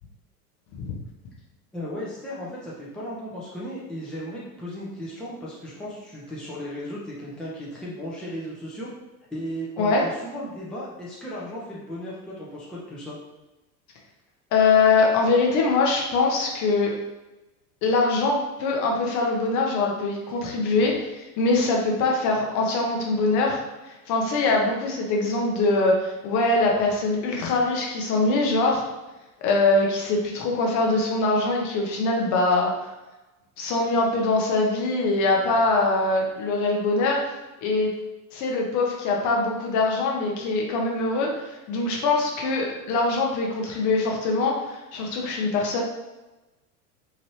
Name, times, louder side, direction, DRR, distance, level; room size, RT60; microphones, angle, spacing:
voice 1, 1.7-8.9 9.3-13.2, equal, ahead, -6 dB, 0.6 m, -35 dB
voice 2, 14.5-16.9 17.8-23.6 24.1-28.8 29.4-32.7 33.6-37.2 37.6-37.9 38.3-45.8, left 3 dB, 40° left, 0 dB, 0.8 m, -23 dB
2.9 x 2.6 x 3.0 m, 1.1 s
figure-of-eight pair, 85°, 46 cm